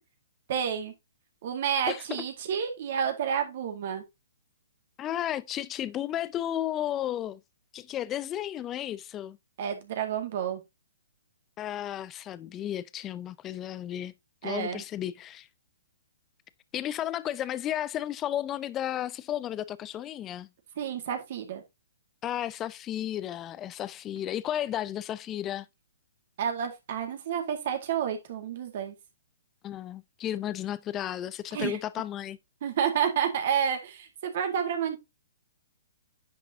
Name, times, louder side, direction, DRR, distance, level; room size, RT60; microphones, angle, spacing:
voice 1, 0.5-0.9 1.4-4.0 9.6-10.6 14.4-14.8 20.8-21.6 26.4-28.9 31.5-31.8 32.6-35.0, right 8 dB, 55° right, 2.1 m, -30 dB
voice 2, 5.0-7.4 7.7-9.4 11.6-14.1 14.4-15.5 16.7-20.5 22.2-25.7 29.6-32.4, left 11 dB, 20° left, 0.5 m, -33 dB
9.8 x 5.8 x 2.8 m
hypercardioid pair, 135°, 0 cm